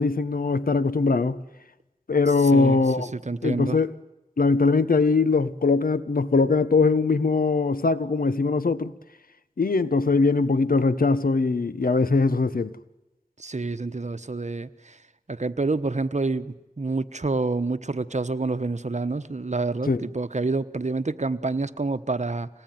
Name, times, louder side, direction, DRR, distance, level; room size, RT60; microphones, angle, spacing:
voice 1, 0.0-1.4 2.1-3.1 3.4-3.9 4.4-8.9 9.6-12.8 19.9-20.0, left 3 dB, 90° left, 1.1 m, -21 dB
voice 2, 3.1-3.8 13.4-15.0 15.3-22.5, right 3 dB, 55° right, 1.2 m, -28 dB
26.5 x 19.0 x 9.4 m
wide cardioid pair, 40°, 14 cm